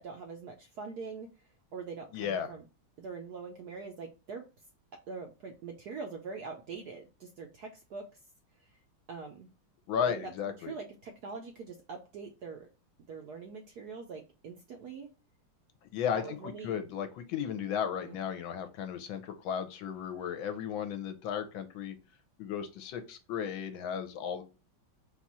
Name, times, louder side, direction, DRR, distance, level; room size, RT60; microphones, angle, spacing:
voice 1, 0.0-1.3 1.7-2.7 3.0-4.4 4.9-8.1 9.1-9.5 10.1-10.3 10.6-12.7 13.1-15.1 16.1-16.8 18.0-18.2, right 4 dB, 70° right, 3 dB, 0.9 m, -43 dB
voice 2, 2.1-2.5 9.9-10.7 15.9-22.0 22.4-24.4, left 8 dB, 75° left, 9 dB, 1.4 m, -35 dB
4.3 x 2.4 x 4.2 m, 0.30 s
omnidirectional pair, 2.3 m